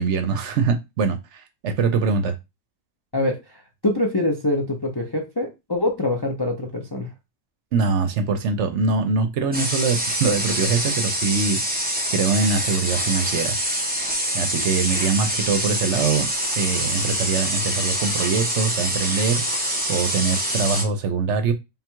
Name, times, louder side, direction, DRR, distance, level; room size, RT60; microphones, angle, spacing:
voice 1, 0.0-2.3 7.7-13.8 14.3-21.5, right 5 dB, 65° right, 0.8 m, -23 dB
voice 2, 3.1-7.1, left 1 dB, 35° left, 0.4 m, -24 dB
sound 1, 9.5-20.8, equal, 10° right, 0.7 m, -25 dB
3.6 x 2.3 x 4.4 m
omnidirectional pair, 1.4 m